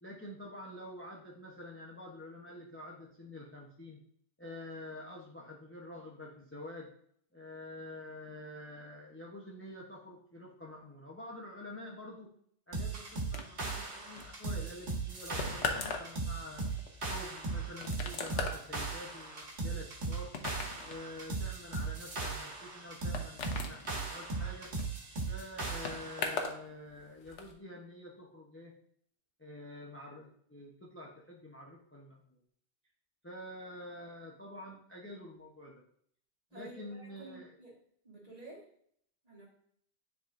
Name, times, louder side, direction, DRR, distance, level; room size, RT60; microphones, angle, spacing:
voice 1, 0.0-4.0 4.4-6.9 7.3-12.3 12.7-16.6 17.1-20.3 20.7-24.7 25.3-28.7 29.4-32.4 33.2-35.7 36.5-37.5, left 1 dB, 10° left, -3 dB, 0.8 m, -47 dB
sound 1, 12.7-26.3, right 3 dB, 75° right, 1.6 m, -38 dB
sound 2, 13.3-26.6 26.9-27.5, left 4 dB, 90° left, 1.1 m, -41 dB
voice 2, 36.5-37.8 38.0-38.7 39.2-39.5, right 2 dB, 35° right, -5 dB, 2.1 m, -51 dB
9.9 x 3.7 x 2.6 m, 0.64 s
omnidirectional pair, 1.2 m